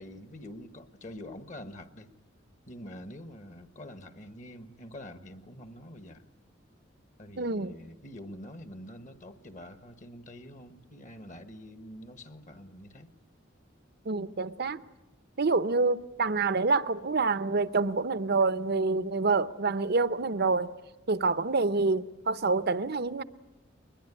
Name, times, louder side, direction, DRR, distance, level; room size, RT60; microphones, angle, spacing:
voice 1, 0.0-2.1 2.7-6.3 7.2-13.1, left 1 dB, 40° left, 1.4 m, -46 dB
voice 2, 7.4-7.7 14.0-14.8 15.4-20.7 21.1-23.2, right 3 dB, 55° right, 0.8 m, -27 dB
22.0 x 21.0 x 9.7 m
head